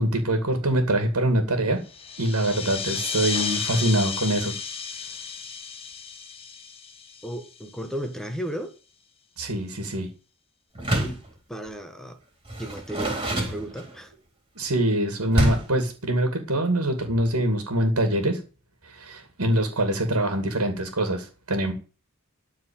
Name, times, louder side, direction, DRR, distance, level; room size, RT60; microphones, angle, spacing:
voice 1, 0.0-1.8 2.2-4.5 9.4-10.1 14.5-18.4 18.9-21.7, right 1 dB, 70° right, 7 dB, 2.5 m, -24 dB
sound 1, 1.9-8.0, left 6 dB, 25° left, 1.4 m, -33 dB
voice 2, 7.2-8.7 11.0-11.2 11.5-12.2 12.6-14.1, equal, ahead, 6 dB, 1.4 m, -34 dB
Door, 10.8-11.3 12.5-14.1 15.3-15.8, right 1 dB, 25° right, 3.9 m, -26 dB
13.5 x 4.7 x 8.9 m, 0.35 s
head